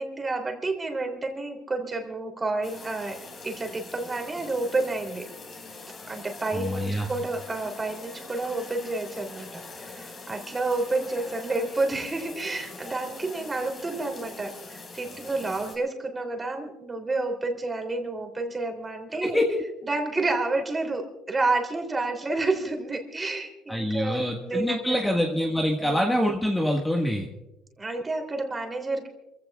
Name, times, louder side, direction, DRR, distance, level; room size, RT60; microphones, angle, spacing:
voice 1, 0.0-5.3 6.1-19.4 19.8-25.1 25.8-26.0 27.8-29.1, right 2 dB, 20° right, 3 dB, 3.2 m, -30 dB
sound 1, 2.6-15.8, left 3 dB, 35° left, 4.6 m, -43 dB
voice 2, 6.5-7.1 19.2-19.6 23.7-27.3, equal, 10° left, 0 dB, 1.6 m, -25 dB
28.0 x 16.0 x 2.4 m, 0.99 s
cardioid pair, 120°, 0 cm